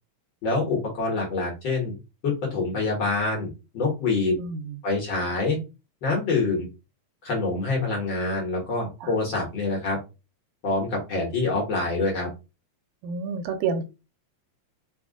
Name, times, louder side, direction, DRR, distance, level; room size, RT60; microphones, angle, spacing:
voice 1, 0.4-1.9 2.2-4.4 4.8-5.6 6.0-6.7 7.2-10.0 10.6-12.3, left 3 dB, 55° left, -1 dB, 1.5 m, -26 dB
voice 2, 4.4-4.8 9.0-9.1 13.0-13.8, right 5 dB, 80° right, 7 dB, 2.1 m, -29 dB
4.7 x 2.3 x 3.6 m, 0.28 s
omnidirectional pair, 3.5 m